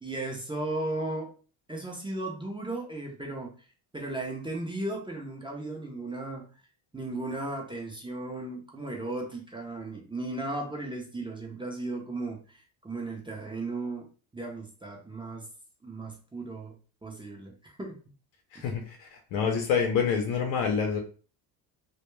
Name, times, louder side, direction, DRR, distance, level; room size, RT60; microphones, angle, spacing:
voice 1, 0.0-1.3 1.7-3.5 3.9-6.5 6.9-15.5 15.8-16.8 17.0-18.0 18.5-18.6, right 2 dB, 10° right, 0 dB, 0.5 m, -36 dB
voice 2, 18.5-21.0, left 6 dB, 85° left, 2 dB, 0.7 m, -27 dB
2.2 x 2.1 x 3.0 m, 0.38 s
cardioid pair, 100°, 45 cm